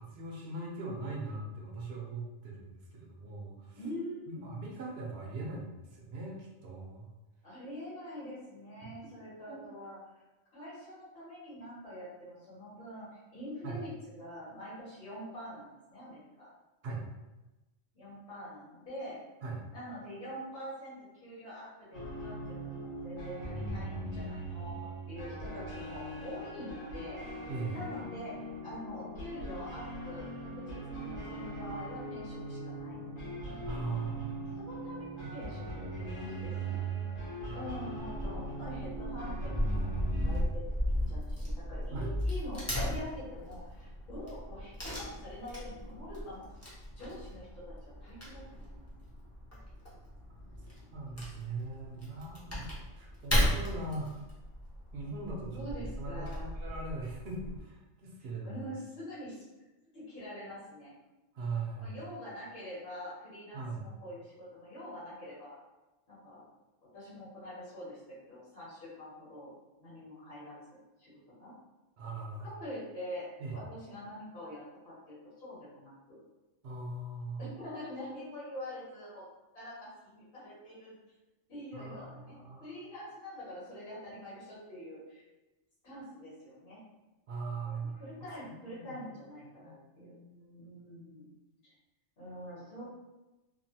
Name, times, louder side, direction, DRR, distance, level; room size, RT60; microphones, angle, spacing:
voice 1, 0.0-3.8 4.3-7.1 9.5-9.6 13.6-13.8 16.8-17.0 19.4-19.6 27.5-27.8 33.6-34.5 36.0-36.8 41.9-42.1 50.9-52.7 52.9-54.1 54.9-58.6 61.3-61.9 63.5-63.8 72.0-72.5 73.4-73.6 76.6-77.6 81.7-82.7 87.3-88.0 88.4-89.0 89.6-90.7, right 3 dB, 60° right, -1 dB, 0.8 m, -40 dB
voice 2, 3.7-4.5 7.4-10.0 10.5-13.9 14.2-16.5 17.9-19.2 19.7-27.2 27.7-33.0 33.4-33.5 34.0-34.2 34.6-36.8 37.5-40.6 41.1-46.7 47.0-47.7 48.0-48.8 55.5-56.5 58.4-59.4 59.9-60.9 61.8-65.6 66.1-66.4 66.9-68.0 68.3-69.5 69.8-71.5 72.4-76.2 77.4-79.2 79.5-80.9 81.5-82.3 82.6-85.2 85.8-86.8 87.6-90.1 90.5-91.3 91.6-91.7 92.2-92.8, equal, 50° left, -8 dB, 1.4 m, -45 dB
sound 1, 21.9-40.4, right 2 dB, 85° left, 1.3 m, -40 dB
Wood / Tearing, 38.0-57.6, equal, 15° left, 0.6 m, -36 dB
2.9 x 2.3 x 2.8 m, 1.1 s
omnidirectional pair, 1.3 m